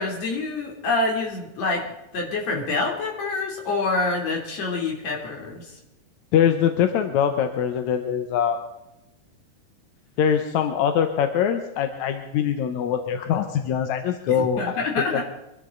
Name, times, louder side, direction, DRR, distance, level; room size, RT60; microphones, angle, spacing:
voice 1, 0.0-5.7 14.3-15.3, left 3 dB, 50° left, 0 dB, 4.2 m, -27 dB
voice 2, 6.3-8.6 10.2-14.9 15.1-15.3, left 8 dB, 70° left, 6 dB, 2.0 m, -23 dB
23.5 x 13.5 x 3.9 m, 0.93 s
omnidirectional pair, 4.0 m